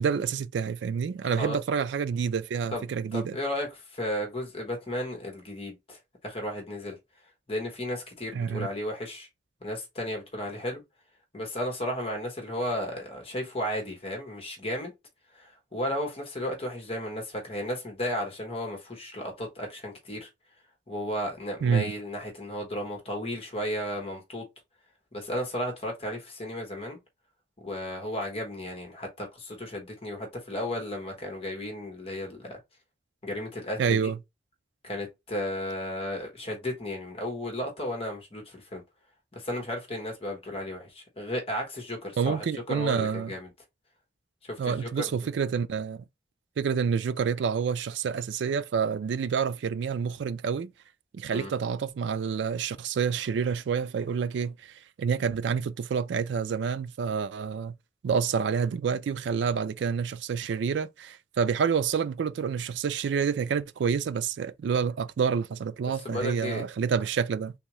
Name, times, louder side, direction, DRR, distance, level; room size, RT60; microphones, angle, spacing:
voice 1, 0.0-3.4 8.3-8.7 21.6-21.9 33.8-34.2 42.2-43.3 44.6-46.0 46.6-50.7 51.1-57.8 58.0-67.5, right 6 dB, 80° right, 0.3 m, -28 dB
voice 2, 3.1-3.7 3.9-6.0 6.2-7.0 7.5-9.3 9.6-10.8 11.3-14.9 15.4-20.3 20.9-24.4 25.1-27.0 27.6-32.6 33.2-34.1 34.8-38.8 39.3-43.5 44.5-45.0 51.3-51.5 65.9-66.6, left 1 dB, 35° left, 1.2 m, -34 dB
3.6 x 2.7 x 3.0 m
head